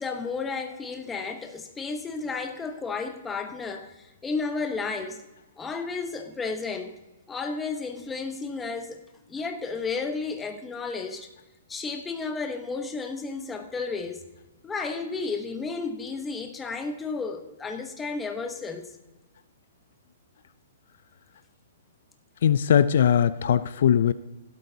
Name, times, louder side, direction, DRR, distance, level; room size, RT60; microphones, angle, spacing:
voice 1, 0.0-5.2 5.6-7.0 7.3-9.0 9.3-11.3 11.7-14.2 14.6-18.9, left 4 dB, 10° left, 1.0 m, -32 dB
voice 2, 22.4-24.1, left 9 dB, 60° left, 0.5 m, -20 dB
16.0 x 12.0 x 2.8 m
hypercardioid pair, 165°, 0 cm